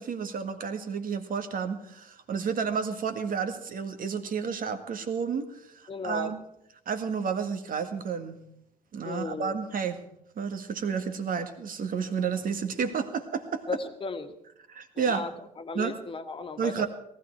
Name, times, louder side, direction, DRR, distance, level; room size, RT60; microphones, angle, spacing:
voice 1, 0.0-5.5 5.7-6.4 6.9-8.4 8.9-10.0 10.4-13.6 14.7-15.3 15.7-16.0 16.6-16.9, right 6 dB, 45° right, 8 dB, 1.9 m, -31 dB
voice 2, 5.9-6.3 9.1-9.6 13.7-14.3 15.0-15.3 15.6-16.9, left 4 dB, 25° left, 8 dB, 1.7 m, -35 dB
18.5 x 15.0 x 4.6 m, 0.78 s
figure-of-eight pair, 55°, 20 cm